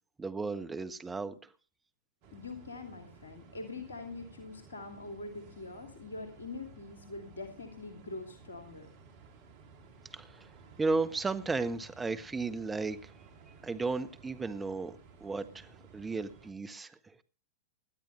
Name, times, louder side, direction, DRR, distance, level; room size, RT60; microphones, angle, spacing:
voice 1, 0.2-1.3 10.1-10.5 10.8-13.1 13.6-17.2, right 3 dB, 15° right, 1.4 m, -34 dB
sound 1, 2.2-16.5, right 5 dB, 50° right, 3.0 m, -56 dB
voice 2, 2.3-8.9, left 3 dB, 80° left, 2.7 m, -44 dB
20.0 x 12.5 x 3.2 m
figure-of-eight pair, 95°, 0 cm